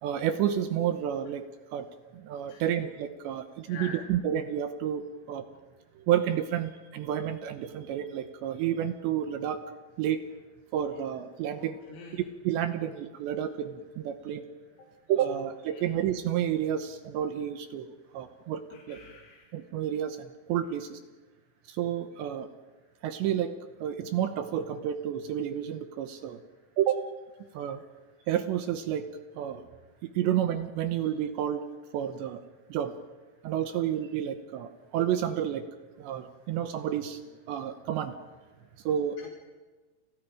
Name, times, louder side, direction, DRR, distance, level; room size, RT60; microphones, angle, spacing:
voice 1, 0.0-1.9 2.1-5.5 6.0-9.6 10.0-10.2 10.7-11.8 12.1-14.4 15.1-19.0 19.5-21.0 21.7-22.5 23.0-23.5 23.8-26.4 26.8-27.1 27.5-27.8 28.3-29.1 29.4-29.7 30.0-31.6 31.9-32.4 32.7-32.9 33.4-35.7 36.0-37.2 37.5-38.2 38.8-39.3, right 10 dB, 75° right, 8 dB, 2.9 m, -30 dB
voice 2, 3.7-4.0 11.6-12.2 15.7-15.9 18.7-19.5 39.2-39.3, left 5 dB, 90° left, 0 dB, 5.6 m, -45 dB
30.0 x 30.0 x 5.0 m, 1.3 s
omnidirectional pair, 5.8 m